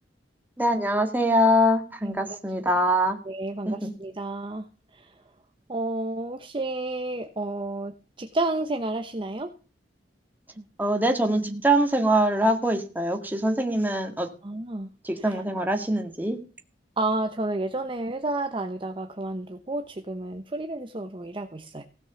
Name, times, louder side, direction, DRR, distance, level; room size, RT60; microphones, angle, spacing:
voice 1, 0.6-3.2 3.7-3.9 10.8-14.3 15.0-16.4, equal, 10° right, 4 dB, 1.9 m, -23 dB
voice 2, 2.0-2.4 3.2-4.7 4.9-5.1 5.7-7.9 8.2-9.5 10.6-10.7 11.4-11.6 14.4-14.9 15.2-15.4 17.0-21.8, right 2 dB, 30° right, 6 dB, 0.9 m, -31 dB
16.5 x 6.3 x 7.0 m, 0.37 s
head